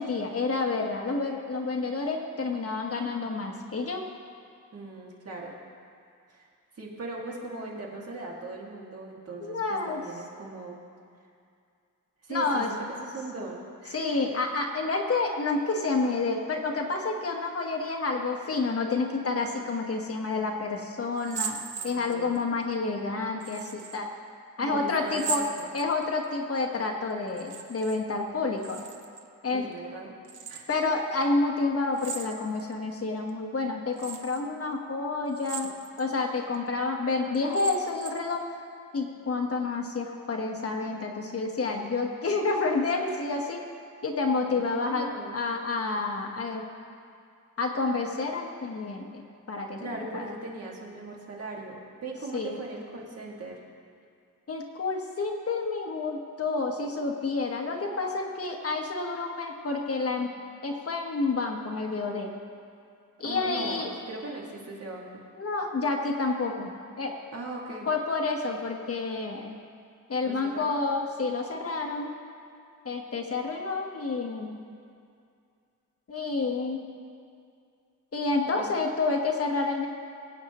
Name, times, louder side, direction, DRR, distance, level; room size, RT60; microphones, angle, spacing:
voice 1, 0.0-4.0 9.4-10.0 12.3-12.7 13.9-21.6 21.8-24.1 24.6-25.4 25.7-28.8 29.4-29.7 30.7-35.7 36.0-38.4 38.9-43.6 44.0-46.7 47.6-49.2 49.5-49.8 50.1-50.2 52.3-52.6 54.5-60.3 60.6-62.3 63.2-63.9 65.4-66.7 67.0-67.1 67.9-69.6 70.1-72.1 72.8-74.6 76.1-76.8 78.1-79.9, left 3 dB, 45° left, 2 dB, 1.3 m, -29 dB
voice 2, 4.7-5.5 6.3-6.5 6.8-10.8 12.2-14.3 21.8-22.3 24.6-25.7 29.5-30.2 30.5-30.8 44.6-45.4 49.8-53.6 63.2-65.2 67.3-67.9 70.2-70.7 78.4-78.7, right 2 dB, 45° right, -2 dB, 2.1 m, -39 dB
sound 1, 21.2-22.4 23.4-24.0 25.1-26.3 27.3-28.0 28.3-29.3 30.2-30.8 32.0-32.7 33.3-33.4 34.0-34.4 35.3-36.1 36.5-36.6 37.3-38.3, right 7 dB, 60° right, 0.9 m, -38 dB
22.5 x 8.7 x 3.0 m, 2.4 s
wide cardioid pair, 115°, 34 cm